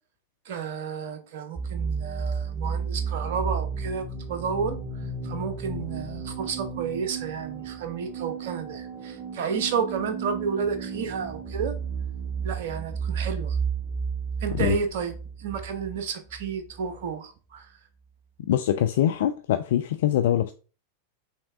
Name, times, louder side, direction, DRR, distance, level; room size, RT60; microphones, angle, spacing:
voice 1, 0.5-4.8 5.2-11.7 12.4-13.6 14.4-17.7, right 6 dB, 55° right, 0.7 m, -31 dB
sound 1, 1.6-17.1, right 5 dB, 20° right, 0.9 m, -33 dB
voice 2, 18.5-20.5, left 11 dB, 55° left, 0.3 m, -23 dB
5.4 x 3.2 x 2.5 m
figure-of-eight pair, 90°, 0 cm